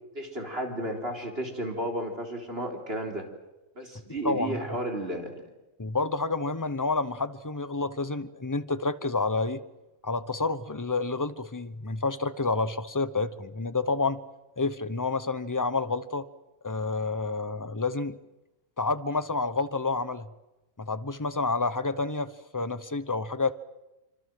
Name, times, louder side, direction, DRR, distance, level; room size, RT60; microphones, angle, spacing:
voice 1, 0.1-3.2 3.8-5.3, right 1 dB, 45° right, 3 dB, 4.0 m, -33 dB
voice 2, 4.2-4.8 5.8-9.6 10.0-14.2 14.6-16.3 16.6-18.2 18.8-20.3 20.8-23.5, left 3 dB, 15° left, 13 dB, 0.9 m, -29 dB
26.0 x 25.5 x 7.8 m, 0.98 s
omnidirectional pair, 1.4 m